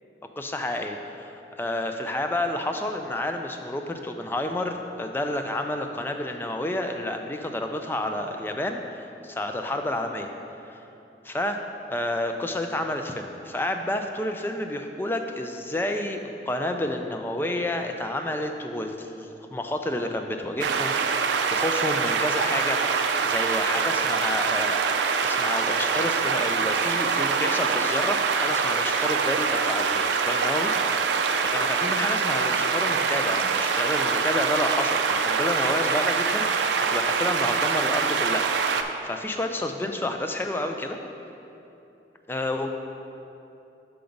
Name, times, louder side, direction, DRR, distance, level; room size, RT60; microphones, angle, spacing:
voice 1, 0.4-10.3 10.6-10.8 11.2-11.6 11.9-21.0 21.5-41.0 42.3-42.7, left 1 dB, 10° left, 5 dB, 0.3 m, -30 dB
sound 1, 20.6-38.8, right 5 dB, 85° right, 0.4 m, -24 dB
5.8 x 5.2 x 5.1 m, 2.9 s
head